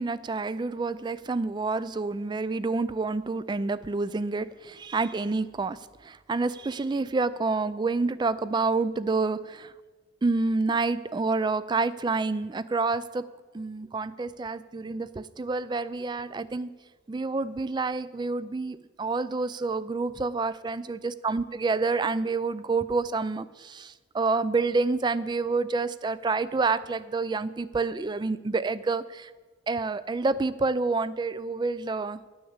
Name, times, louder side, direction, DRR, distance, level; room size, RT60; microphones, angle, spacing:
voice 1, 0.0-9.7 10.2-13.2 13.5-16.7 17.1-29.3 29.7-32.2, right 3 dB, 25° right, 16 dB, 0.3 m, -28 dB
10.5 x 6.3 x 8.0 m, 1.3 s
head